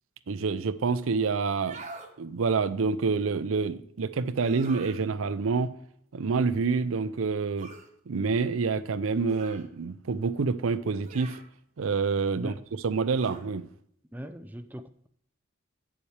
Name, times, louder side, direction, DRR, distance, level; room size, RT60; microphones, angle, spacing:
voice 1, 0.3-1.8 2.2-5.7 6.1-7.7 8.1-11.4 11.8-13.6, right 4 dB, 70° right, 0.5 m, -27 dB
sound 1, 1.5-2.1 4.4-5.0 7.6-7.9 9.3-9.7 11.0-11.5 13.1-13.5, right 3 dB, 35° right, 1.1 m, -45 dB
voice 2, 14.1-15.1, equal, 10° right, 0.4 m, -40 dB
8.6 x 7.1 x 3.3 m
head